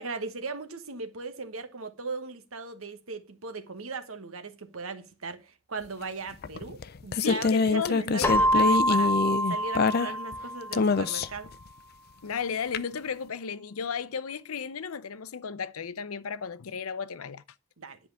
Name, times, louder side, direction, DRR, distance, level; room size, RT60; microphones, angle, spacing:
voice 1, 0.0-9.1 9.5-11.5 17.8-18.0, right 3 dB, 80° right, 1.3 m, -38 dB
sound 1, 6.4-10.4 10.7-11.5 12.7-12.8, left 4 dB, 45° left, 0.5 m, -25 dB
voice 2, 7.1-8.3 12.2-17.4, left 6 dB, 90° left, 0.7 m, -34 dB
Keyboard (musical), 8.2-11.0, equal, 10° left, 0.8 m, -26 dB
10.5 x 4.8 x 7.2 m
head